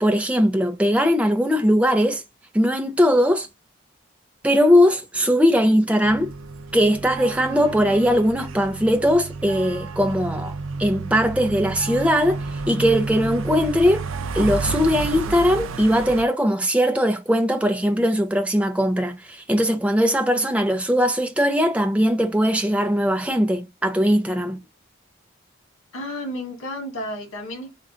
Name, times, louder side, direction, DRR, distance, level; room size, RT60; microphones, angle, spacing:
voice 1, 0.0-2.2 2.5-3.5 4.4-6.3 6.7-14.1 14.3-24.6, equal, 5° right, 0.5 m, -20 dB
sound 1, 6.0-16.2, right 3 dB, 80° right, 0.5 m, -31 dB
voice 2, 25.9-27.8, left 1 dB, 85° left, 1.7 m, -32 dB
3.7 x 2.3 x 3.7 m
head